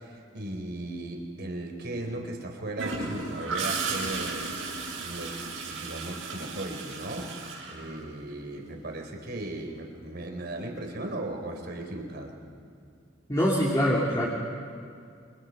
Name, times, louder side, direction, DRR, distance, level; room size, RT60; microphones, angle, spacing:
voice 1, 0.0-4.4 5.0-5.4 5.6-7.4 7.7-12.3, right 1 dB, 55° right, 3 dB, 3.7 m, -37 dB
Gurgling / Toilet flush, 2.8-8.5 10.5-10.8, right 4 dB, 80° right, 7.2 m, -35 dB
voice 2, 13.3-14.3, equal, 20° left, -4 dB, 2.7 m, -24 dB
30.0 x 24.5 x 5.4 m, 2.3 s
head